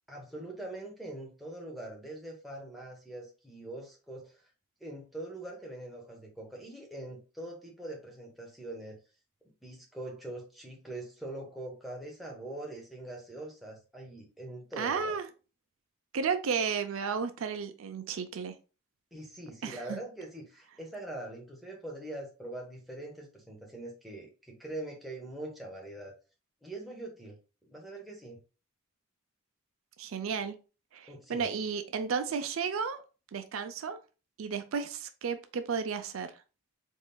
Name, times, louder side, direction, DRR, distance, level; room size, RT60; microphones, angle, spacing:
voice 1, 0.1-4.5 4.8-9.0 9.6-15.1 19.1-26.1 26.6-28.4 31.1-31.5, right 1 dB, ahead, 1.0 m, -43 dB
voice 2, 14.8-15.3 16.1-18.5 19.6-20.0 30.0-30.6 30.9-33.0 33.3-34.0 34.4-36.3, right 6 dB, 75° right, 0.4 m, -33 dB
4.0 x 3.6 x 2.2 m
head